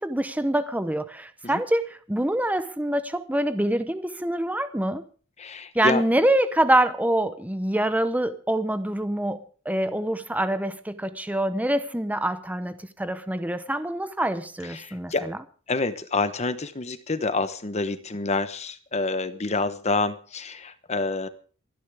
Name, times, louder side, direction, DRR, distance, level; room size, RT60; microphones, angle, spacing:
voice 1, 0.0-5.0 5.7-15.4, right 1 dB, 5° right, 0.8 m, -25 dB
voice 2, 5.4-6.0 14.7-15.3 15.7-21.3, left 3 dB, 30° left, 1.0 m, -27 dB
28.0 x 10.0 x 3.6 m
head